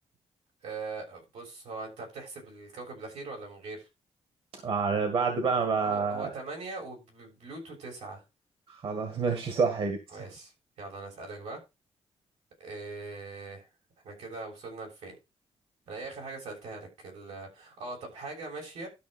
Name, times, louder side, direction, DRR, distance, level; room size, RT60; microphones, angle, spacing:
voice 1, 0.6-3.9 5.5-8.2 10.1-10.5 10.8-11.6 12.6-13.7 14.0-15.1 15.9-18.9, right 3 dB, 85° right, 0 dB, 6.6 m, -41 dB
voice 2, 4.6-6.3 8.7-10.0, right 5 dB, 55° right, 6 dB, 1.9 m, -28 dB
12.5 x 5.9 x 4.4 m, 0.26 s
wide cardioid pair, 155°, 11 cm